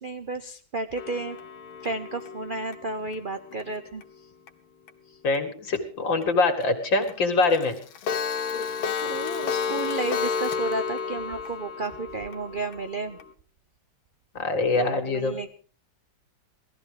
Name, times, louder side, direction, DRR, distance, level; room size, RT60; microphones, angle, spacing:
voice 1, 0.0-1.4 1.8-4.0 5.1-5.2 9.0-13.2 14.7-15.5, right 3 dB, 80° right, 8 dB, 0.4 m, -32 dB
Clock, 1.0-4.0 4.5-4.6 4.9-5.0 5.3-5.4 5.7-5.8 6.2-6.3 6.6-6.7 7.0-7.1 7.4-13.3, left 6 dB, 90° left, 1.9 m, -31 dB
voice 2, 5.2-7.7 14.3-15.4, left 3 dB, 65° left, 6 dB, 2.8 m, -24 dB
17.5 x 13.5 x 5.0 m, 0.42 s
omnidirectional pair, 2.2 m